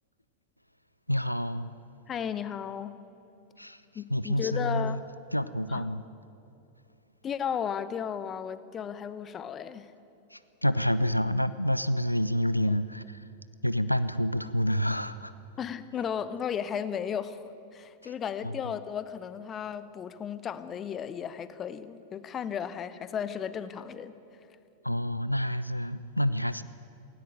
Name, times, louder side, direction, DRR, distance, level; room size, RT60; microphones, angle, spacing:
voice 1, 1.1-1.7 3.6-3.8 4.1-5.0 5.3-6.0 10.3-13.2 13.6-15.3 18.0-18.1 18.4-18.5 24.8-26.6, equal, 90° left, 15 dB, 0.5 m, -28 dB
voice 2, 2.1-2.9 3.9-5.0 5.7-5.9 7.2-9.9 15.6-24.1, left 8 dB, 25° left, 14 dB, 0.9 m, -34 dB
17.5 x 16.5 x 9.2 m, 2.8 s
figure-of-eight pair, 90°, 0 cm